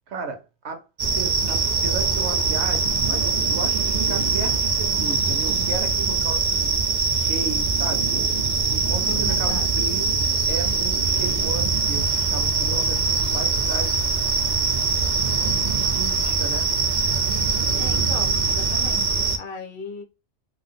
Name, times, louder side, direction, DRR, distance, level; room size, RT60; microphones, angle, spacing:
voice 1, 0.1-0.8 1.1-6.7 7.1-8.1 8.7-14.0 15.9-16.7, right 4 dB, 70° right, 0.9 m, -34 dB
sound 1, 1.0-19.4, right 4 dB, 55° right, 0.5 m, -22 dB
voice 2, 9.0-9.8 17.8-20.0, left 4 dB, 60° left, 0.7 m, -37 dB
2.7 x 2.1 x 3.6 m
omnidirectional pair, 1.2 m